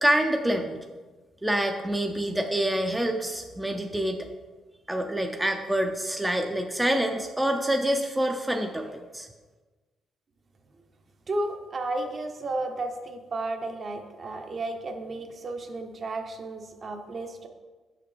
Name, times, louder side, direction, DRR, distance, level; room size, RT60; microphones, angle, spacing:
voice 1, 0.0-0.8 1.4-4.3 4.9-9.3, right 1 dB, 10° right, 4 dB, 0.5 m, -26 dB
voice 2, 11.3-17.5, right 2 dB, 45° right, 4 dB, 0.8 m, -33 dB
6.4 x 5.7 x 3.3 m, 1.3 s
cardioid pair, 90°, 0 cm